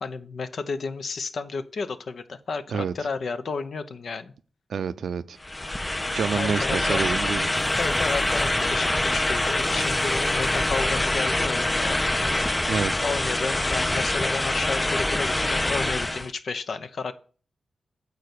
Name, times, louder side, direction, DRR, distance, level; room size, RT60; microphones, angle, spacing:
voice 1, 0.0-4.3 6.3-7.0 7.7-12.0 13.0-17.1, left 4 dB, 70° left, 0.8 m, -32 dB
voice 2, 4.7-5.4 6.1-7.5 12.7-12.9, right 6 dB, 80° right, 0.5 m, -28 dB
sound 1, 5.4-16.3, left 1 dB, 20° left, 0.5 m, -25 dB
sound 2, 7.6-12.5 12.8-12.9, right 1 dB, 15° right, 0.8 m, -41 dB
8.6 x 4.1 x 6.7 m
cardioid pair, 50°, 0 cm